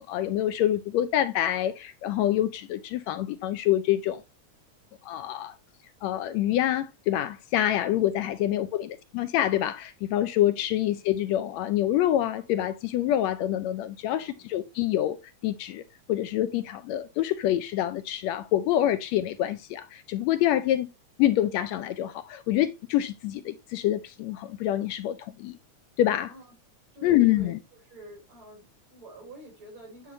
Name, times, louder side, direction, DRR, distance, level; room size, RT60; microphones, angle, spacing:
voice 1, 0.0-4.2 5.0-5.5 6.0-15.2 15.4-15.8 16.1-20.9 21.2-25.6 26.0-26.3 27.0-27.6, left 12 dB, 80° left, 1.7 m, -26 dB
voice 2, 7.9-8.5 10.3-10.6 14.1-14.4 26.3-26.6 26.9-27.6 27.8-30.1, right 1 dB, 45° right, 6.0 m, -47 dB
9.1 x 5.6 x 3.0 m
omnidirectional pair, 3.3 m